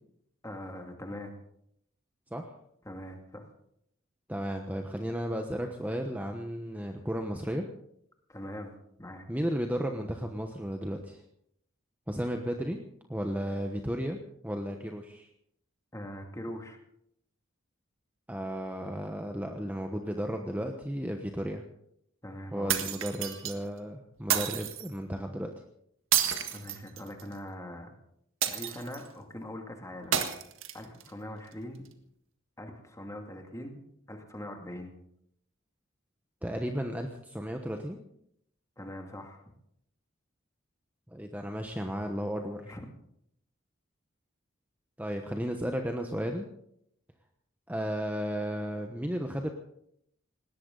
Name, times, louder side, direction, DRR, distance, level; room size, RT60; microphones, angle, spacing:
voice 1, 0.4-1.3 2.8-3.5 8.3-8.7 9.0-9.3 15.9-16.8 22.2-22.9 26.5-27.9 28.4-30.3 30.7-31.9 32.6-33.8 34.1-34.9 38.8-39.4 42.6-42.9, left 1 dB, 15° left, 3 dB, 2.5 m, -42 dB
voice 2, 4.3-7.6 9.3-11.2 12.1-12.8 13.1-14.2 14.4-15.3 18.3-21.6 22.5-25.5 36.4-38.0 41.1-42.6 45.0-46.5 47.7-49.5, equal, 10° right, 4 dB, 1.1 m, -34 dB
sound 1, 22.7-23.5 24.3-24.9 26.1-27.3 28.4-29.1 30.1-31.1, right 10 dB, 80° right, 1.7 m, -30 dB
20.0 x 17.5 x 4.0 m, 0.73 s
head